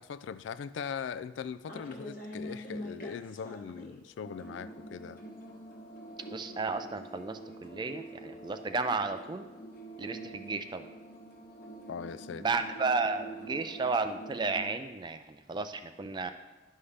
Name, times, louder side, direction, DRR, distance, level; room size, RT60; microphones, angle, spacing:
voice 1, 0.0-5.2 11.9-12.4, left 6 dB, 75° left, 14 dB, 0.3 m, -40 dB
sound 1, 1.7-4.0 4.2-14.7, right 1 dB, 45° left, 1.2 m, -45 dB
voice 2, 6.3-9.4 10.0-10.8 12.4-16.3, right 4 dB, 25° right, 9 dB, 0.3 m, -33 dB
11.0 x 5.5 x 3.3 m, 1.1 s
head